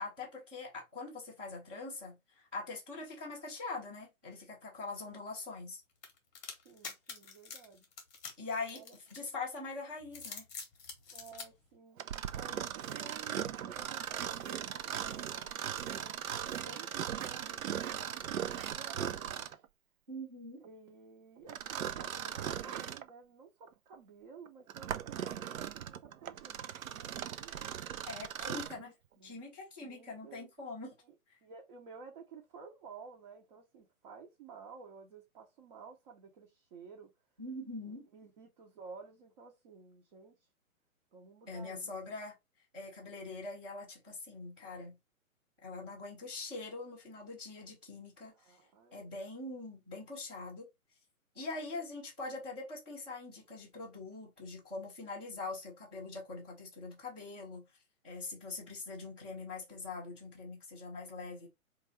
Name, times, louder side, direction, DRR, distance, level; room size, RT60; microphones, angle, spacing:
voice 1, 0.0-5.8 8.4-10.4 20.1-20.6 28.1-28.9 29.2-30.9 37.4-38.1 41.5-42.4 42.7-45.0 45.6-48.3 48.9-50.7 51.3-57.7 58.0-61.5, left 3 dB, 10° right, 0.4 m, -43 dB
sound 1, 6.0-9.5 10.0-11.5, left 5 dB, 15° left, 0.9 m, -46 dB
voice 2, 6.6-7.9 8.7-8.9 11.1-12.0 12.3-16.1 16.5-18.1 18.5-19.7 20.6-27.5 28.4-29.4 29.8-30.5 31.0-31.2 31.4-37.1 37.8-40.3 41.1-41.9 48.3-49.2, right 5 dB, 35° right, 0.7 m, -53 dB
Mechanisms, 12.0-19.7 21.5-23.1 23.7-23.8 24.5-28.8, right 9 dB, 70° right, 0.5 m, -39 dB
3.9 x 2.4 x 3.1 m
hypercardioid pair, 135°, 43 cm